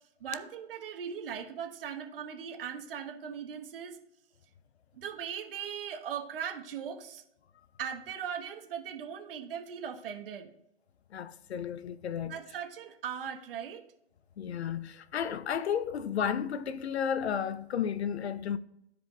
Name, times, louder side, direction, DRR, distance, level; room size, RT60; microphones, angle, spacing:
voice 1, 0.2-4.0 4.9-7.2 7.8-10.5 12.2-13.8, right 8 dB, 60° right, 1.3 m, -39 dB
voice 2, 11.1-12.3 14.4-18.6, left 8 dB, 75° left, 0.7 m, -33 dB
13.5 x 5.0 x 2.3 m
hypercardioid pair, 135°, 33 cm